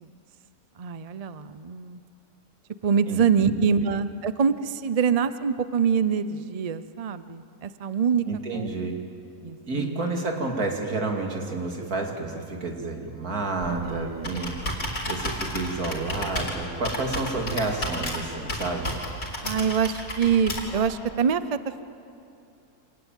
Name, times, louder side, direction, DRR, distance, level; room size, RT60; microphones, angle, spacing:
voice 1, 0.8-2.0 2.8-8.2 8.5-8.7 9.4-10.0 13.7-14.4 19.4-21.8, right 6 dB, 50° right, 13 dB, 0.4 m, -25 dB
voice 2, 3.1-3.8 8.2-8.9 9.7-14.5 15.1-18.9, right 3 dB, 65° right, 2 dB, 2.9 m, -30 dB
Computer keyboard, 13.6-20.9, left 1 dB, 60° left, 4.5 m, -33 dB
26.0 x 19.5 x 9.1 m, 2.6 s
omnidirectional pair, 1.7 m